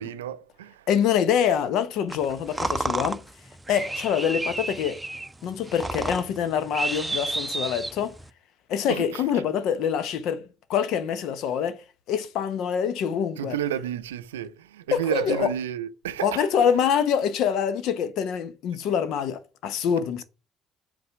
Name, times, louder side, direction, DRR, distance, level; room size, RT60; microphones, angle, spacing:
voice 1, 0.0-0.9 8.9-9.4 13.4-16.5, right 10 dB, 90° right, 0.4 m, -31 dB
voice 2, 0.9-3.2 3.7-5.0 5.4-8.1 8.7-10.4 10.7-11.8 12.1-13.5 14.9-15.5 16.2-20.2, left 8 dB, 65° left, 0.9 m, -25 dB
sound 1, 2.1-8.3, right 2 dB, 15° right, 0.6 m, -31 dB
7.9 x 3.9 x 4.7 m
hypercardioid pair, 55°, 0 cm